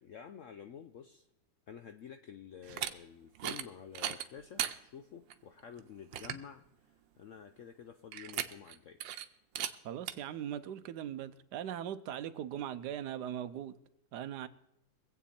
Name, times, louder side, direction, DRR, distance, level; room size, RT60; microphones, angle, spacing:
voice 1, 0.0-1.3 1.7-9.0, left 8 dB, 70° left, 0.7 m, -50 dB
sound 1, 2.6-2.9 3.3-3.7 3.9-4.7 5.3-5.4 5.8-5.9 6.1-6.5 8.1-8.7 9.0-9.2 9.5-9.7 10.1-10.2, right 11 dB, 90° right, 1.4 m, -37 dB
voice 2, 9.8-13.7 14.1-14.5, right 10 dB, 70° right, 1.2 m, -40 dB
23.0 x 8.2 x 4.2 m
omnidirectional pair, 1.9 m